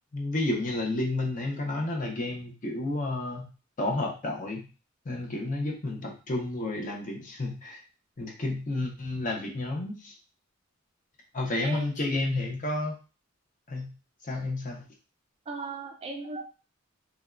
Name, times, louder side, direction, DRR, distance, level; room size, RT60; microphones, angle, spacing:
voice 1, 0.1-3.5 3.8-4.7 5.1-7.8 8.2-10.1 11.3-12.9 13.7-13.9 14.3-14.8, left 2 dB, 40° left, 1 dB, 0.7 m, -31 dB
voice 2, 11.6-11.9 15.5-16.4, right 3 dB, 30° right, 3 dB, 0.3 m, -36 dB
3.5 x 2.2 x 2.3 m, 0.33 s
head